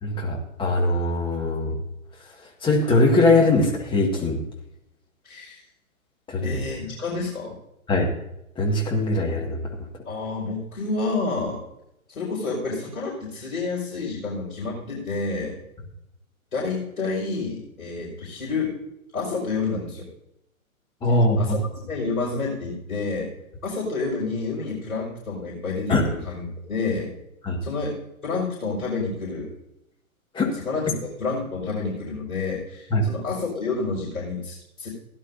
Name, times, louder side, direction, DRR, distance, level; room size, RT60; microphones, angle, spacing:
voice 1, 0.0-1.7 2.6-4.4 6.3-6.6 7.9-8.1 8.6-9.6 21.0-21.6 25.9-26.0 27.4-27.6 30.3-30.5 32.9-33.1, left 2 dB, 10° left, -1 dB, 1.9 m, -21 dB
voice 2, 5.2-5.6 6.4-7.5 10.0-11.6 12.1-15.6 16.5-18.8 19.1-20.1 21.4-21.6 21.9-23.3 23.6-27.1 27.6-27.9 28.2-29.5 30.5-34.9, left 3 dB, 75° left, -6 dB, 5.3 m, -29 dB
16.5 x 11.0 x 2.7 m, 0.82 s
hypercardioid pair, 130°, 43 cm